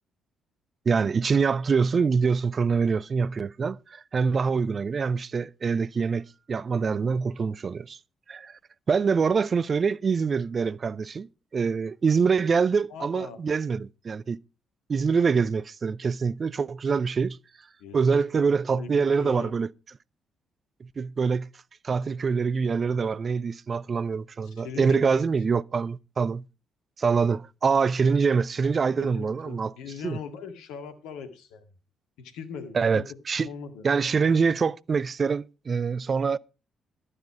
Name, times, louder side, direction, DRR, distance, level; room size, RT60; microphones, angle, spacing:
voice 1, 0.9-8.0 8.3-8.5 8.9-14.4 14.9-17.4 17.9-19.7 21.0-21.5 21.8-26.4 27.0-29.7 30.0-30.2 32.7-33.5 33.8-36.4, right 5 dB, 40° right, 0.5 m, -25 dB
voice 2, 12.9-13.4 17.8-18.4 18.7-19.5 24.4-25.2 28.9-31.6 32.2-33.1 33.4-33.8, left 6 dB, 65° left, 1.8 m, -40 dB
12.0 x 9.9 x 4.8 m
figure-of-eight pair, 40°, 0 cm